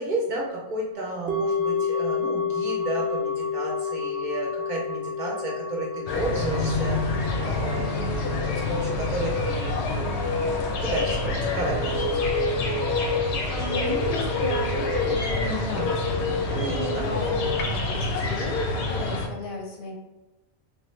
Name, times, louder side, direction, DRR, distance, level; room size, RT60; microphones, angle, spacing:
voice 1, 0.0-10.5 10.8-12.2 15.4-15.9 16.5-17.1, right 2 dB, 55° right, -3 dB, 0.7 m, -32 dB
sound 1, 1.3-11.6 11.8-11.9, left 5 dB, 90° right, 0.9 m, -31 dB
sound 2, 6.1-19.3, left 2 dB, 90° left, 0.9 m, -26 dB
voice 2, 13.5-20.0, left 1 dB, 60° left, -1 dB, 0.7 m, -34 dB
3.1 x 2.1 x 3.1 m, 1.0 s
omnidirectional pair, 1.1 m